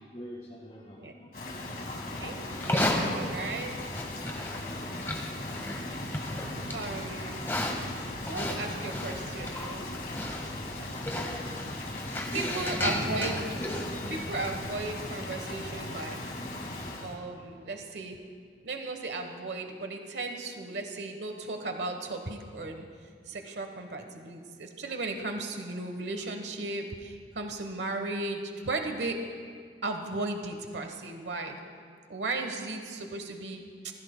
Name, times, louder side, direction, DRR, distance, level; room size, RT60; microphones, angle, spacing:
voice 1, 0.1-1.4 12.3-13.1 13.5-13.9, equal, 35° left, -5 dB, 1.9 m, -43 dB
Rain, 1.3-17.2, left 2 dB, 50° left, 2.0 m, -38 dB
voice 2, 2.2-3.8 6.7-7.5 8.2-9.9 12.3-13.4 14.1-16.2 17.0-18.2 18.6-22.8 23.3-29.2 29.8-31.6 32.1-33.6, right 2 dB, 75° right, 4 dB, 1.1 m, -35 dB
Livestock farm animals working animals, 2.5-14.7, left 1 dB, 15° left, 1.5 m, -35 dB
27.0 x 16.0 x 2.2 m, 2.1 s
head